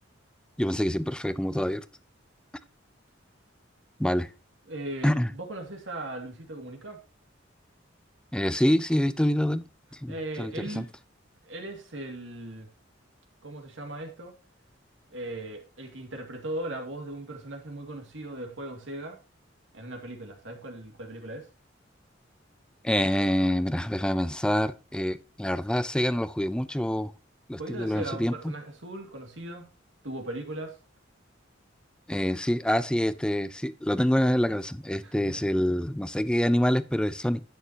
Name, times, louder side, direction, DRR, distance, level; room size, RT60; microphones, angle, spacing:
voice 1, 0.6-1.8 4.0-4.3 5.0-5.3 8.3-9.6 9.9-10.9 22.8-27.1 27.5-28.5 32.1-37.4, equal, 5° left, 0.4 m, -26 dB
voice 2, 4.7-7.0 10.1-10.9 11.4-12.7 13.4-14.4 15.1-19.2 19.7-21.5 27.6-29.7 30.0-30.8 35.0-35.5, right 1 dB, 75° right, 2.4 m, -38 dB
11.0 x 9.2 x 2.8 m
head